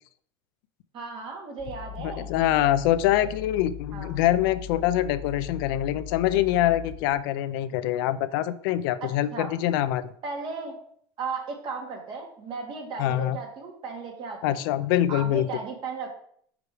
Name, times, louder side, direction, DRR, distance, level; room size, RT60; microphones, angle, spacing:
voice 1, 0.9-2.3 3.2-3.3 3.9-4.1 9.0-9.5 10.2-10.8 11.2-14.6 15.1-16.1, right 4 dB, 45° right, 1 dB, 1.9 m, -35 dB
sound 1, 1.6-7.1, left 10 dB, 50° left, 1.3 m, -40 dB
voice 2, 2.0-10.0 13.0-13.4 14.4-15.5, left 13 dB, 75° left, 12 dB, 0.5 m, -24 dB
5.0 x 4.8 x 4.7 m, 0.62 s
supercardioid pair, 110°, 12 cm